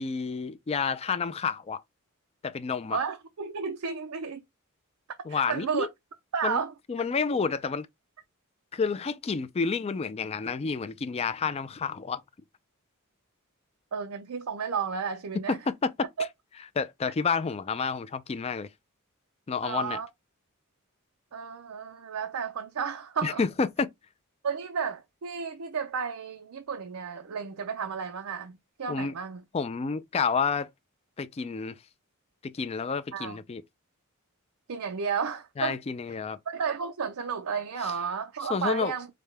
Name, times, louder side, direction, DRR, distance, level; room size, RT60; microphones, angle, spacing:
voice 1, 0.0-1.8 2.4-3.0 5.3-5.9 6.4-6.6 6.9-7.9 8.7-12.2 15.7-15.9 16.8-18.7 19.5-20.0 23.2-23.9 28.9-29.1 29.5-30.7 31.2-31.8 32.5-33.6 35.6-36.4 37.8-37.9 38.5-38.9, left 5 dB, 30° left, 0.3 m, -29 dB
voice 2, 2.9-4.4 5.3-5.9 6.3-6.7 13.9-15.6 16.2-16.3 19.6-20.1 21.3-23.4 24.4-29.4 33.1-33.4 34.7-35.8 36.5-39.1, right 6 dB, 85° right, 0.5 m, -32 dB
5.1 x 2.2 x 3.2 m
head